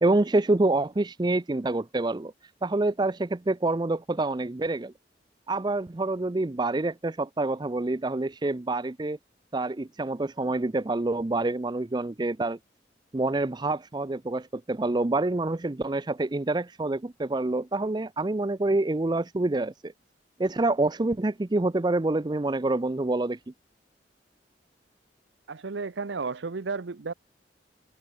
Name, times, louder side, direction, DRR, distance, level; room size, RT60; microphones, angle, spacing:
voice 1, 0.0-2.3 2.6-4.9 5.5-9.2 9.5-12.6 13.1-19.9 20.4-23.4, right 2 dB, 25° right, 0.5 m, -27 dB
voice 2, 25.5-27.1, right 4 dB, 85° right, 0.7 m, -33 dB
open air
head